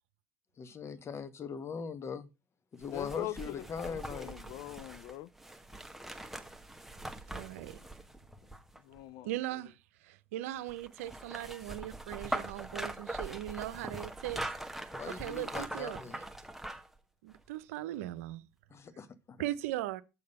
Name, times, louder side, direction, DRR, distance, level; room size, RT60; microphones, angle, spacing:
voice 1, 0.6-2.3 2.7-4.3 14.9-16.2 18.7-19.4, left 6 dB, 35° left, 1.2 m, -41 dB
sound 1, 2.8-9.0 10.7-17.0 17.3-17.4, right 1 dB, 5° right, 1.2 m, -42 dB
voice 2, 2.9-5.3 8.8-9.3, left 14 dB, 60° left, 0.5 m, -42 dB
voice 3, 7.3-7.8 9.2-9.7 10.0-14.4 15.0-16.0 17.2-18.4 19.4-20.0, right 14 dB, 75° right, 0.7 m, -39 dB
7.0 x 6.7 x 5.4 m
hypercardioid pair, 75°, 8 cm